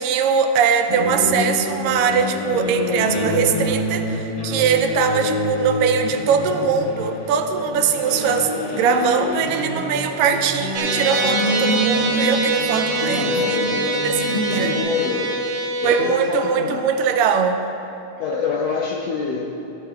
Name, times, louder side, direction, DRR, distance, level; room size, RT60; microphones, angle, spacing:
voice 1, 0.0-13.6 13.8-14.8 15.8-17.6, right 6 dB, 85° right, 7 dB, 2.2 m, -21 dB
sound 1, 0.9-14.8, left 1 dB, 55° left, 1.1 m, -27 dB
sound 2, 10.7-16.0, right 2 dB, 65° right, 2.7 m, -24 dB
voice 2, 13.0-13.8 14.2-15.3 15.8-16.8 18.2-19.5, left 5 dB, 75° left, -3 dB, 1.5 m, -26 dB
16.0 x 13.5 x 2.4 m, 2.9 s
omnidirectional pair, 3.9 m